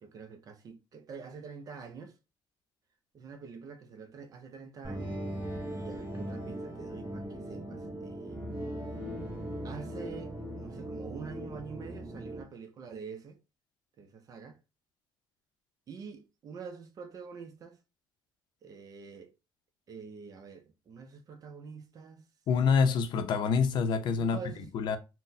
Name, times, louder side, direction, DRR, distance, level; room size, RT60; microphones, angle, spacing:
voice 1, 0.0-2.2 3.1-5.2 5.7-8.5 9.6-13.4 14.0-14.6 15.9-17.8 18.6-19.3 19.9-22.3 24.2-24.7, right 5 dB, 45° right, 0.5 m, -46 dB
sound 1, 4.8-12.4, right 1 dB, 15° right, 1.9 m, -39 dB
voice 2, 22.5-24.4 24.7-25.0, left 5 dB, 60° left, 0.5 m, -26 dB
3.8 x 2.1 x 2.6 m
cardioid pair, 115°, 8 cm